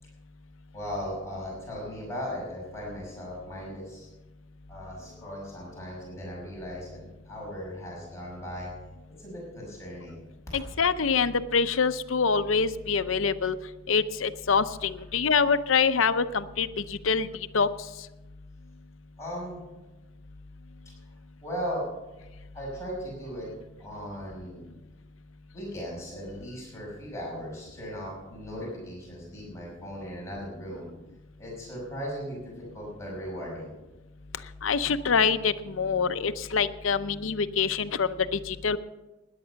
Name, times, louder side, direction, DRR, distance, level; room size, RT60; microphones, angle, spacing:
voice 1, 0.7-4.1 4.7-8.7 9.2-10.2 19.2-19.6 21.4-21.9 22.5-23.5 23.8-24.7 25.5-30.9 31.4-33.7, equal, 15° left, -5 dB, 5.8 m, -37 dB
voice 2, 10.5-13.6 13.9-17.3 17.5-17.7 34.6-38.8, left 5 dB, 80° left, 11 dB, 0.7 m, -25 dB
16.5 x 10.5 x 5.8 m, 1.1 s
head